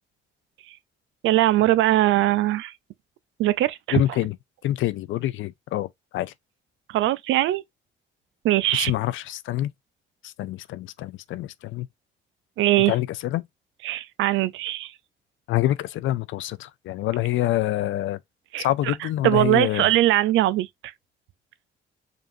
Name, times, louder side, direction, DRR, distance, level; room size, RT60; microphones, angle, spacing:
voice 1, 1.2-2.7 3.4-4.0 6.9-7.6 8.4-8.9 12.6-12.9 13.8-14.9 18.5-18.9 19.2-20.7, right 15 dB, 80° right, 0.4 m, -21 dB
voice 2, 3.9-4.4 4.6-6.3 8.7-9.7 10.2-11.9 12.9-13.5 15.5-18.2 18.6-19.9, left 14 dB, 75° left, 0.4 m, -26 dB
5.1 x 2.5 x 2.6 m
cardioid pair, 90°, 20 cm